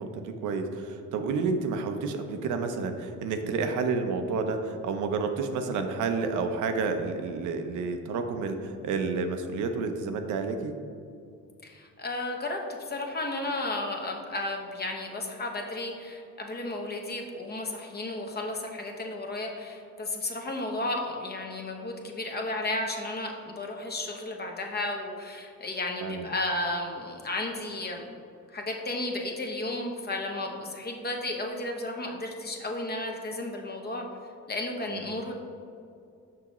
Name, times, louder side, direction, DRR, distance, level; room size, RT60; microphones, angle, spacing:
voice 1, 0.0-10.7 26.0-26.3 34.9-35.2, right 4 dB, 80° right, 6 dB, 0.6 m, -30 dB
voice 2, 11.6-28.0 28.5-34.0 34.5-35.3, left 2 dB, 30° left, 2 dB, 0.9 m, -33 dB
6.0 x 5.8 x 3.0 m, 2.5 s
cardioid pair, 90°, 30 cm